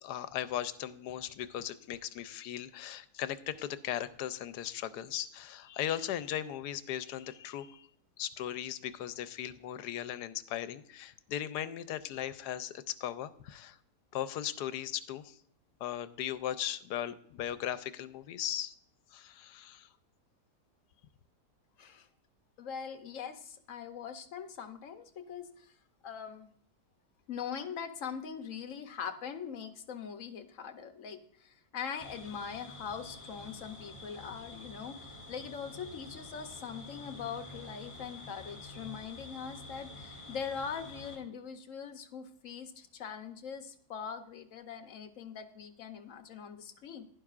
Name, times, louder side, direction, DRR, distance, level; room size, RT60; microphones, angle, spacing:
voice 1, 0.0-7.9 8.2-13.8 14.1-15.4 15.8-18.7 19.1-19.9, left 11 dB, 85° left, 13 dB, 1.2 m, -38 dB
voice 2, 22.6-25.7 26.0-26.5 27.3-47.0, left 7 dB, 60° left, 7 dB, 1.1 m, -42 dB
sound 1, 32.0-41.2, left 2 dB, 20° left, 1.9 m, -48 dB
11.5 x 10.5 x 2.4 m, 0.64 s
omnidirectional pair, 1.7 m